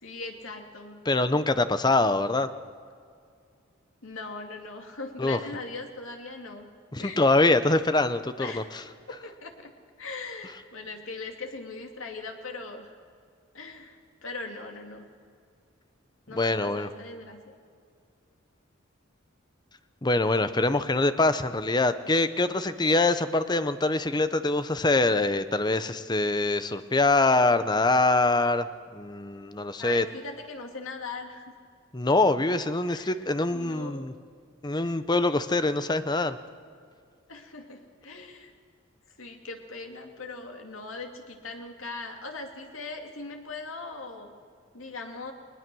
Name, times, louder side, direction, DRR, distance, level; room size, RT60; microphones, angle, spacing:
voice 1, 0.0-1.0 4.0-6.7 7.0-7.3 8.4-8.7 9.1-13.0 13.5-15.1 16.3-17.6 29.8-31.5 32.9-33.2 33.5-34.1 34.8-34.9 37.3-38.5 39.2-44.3 44.7-45.3, left 3 dB, 90° left, 3 dB, 2.5 m, -40 dB
voice 2, 1.1-2.5 5.2-5.4 6.9-8.6 16.3-16.9 20.0-28.7 28.9-30.0 31.9-34.1 34.6-36.4, left 2 dB, 20° left, 12 dB, 0.8 m, -24 dB
20.5 x 20.5 x 6.2 m, 2.2 s
head